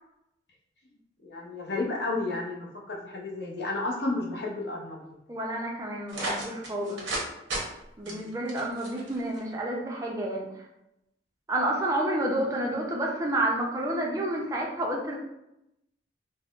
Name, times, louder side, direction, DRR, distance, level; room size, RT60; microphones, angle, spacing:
voice 1, 1.2-5.2 8.1-8.4, left 2 dB, 60° left, -2 dB, 0.7 m, -32 dB
voice 2, 5.3-7.0 8.0-10.5 11.5-15.2, right 1 dB, 20° right, -1 dB, 0.4 m, -29 dB
sound 1, 6.1-7.2 7.5-7.6 8.1-9.4, right 2 dB, 85° right, 0.8 m, -33 dB
3.6 x 2.0 x 2.4 m, 0.85 s
head